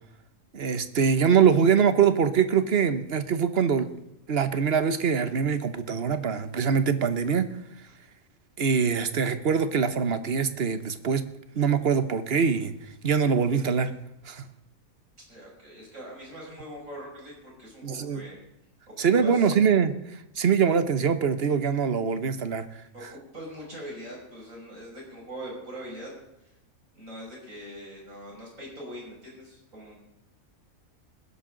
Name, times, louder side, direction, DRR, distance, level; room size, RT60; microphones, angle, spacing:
voice 1, 0.5-3.9 4.3-7.5 8.6-11.3 11.6-12.8 13.0-13.9 14.3-14.5 17.8-18.2 19.0-19.9 20.4-22.7, right 6 dB, 50° right, 11 dB, 1.1 m, -23 dB
voice 2, 15.3-18.4 19.0-19.5 22.9-26.1 26.4-26.5 26.9-30.0, equal, 65° right, -3 dB, 6.7 m, -42 dB
20.0 x 11.0 x 3.9 m, 0.85 s
omnidirectional pair, 1.5 m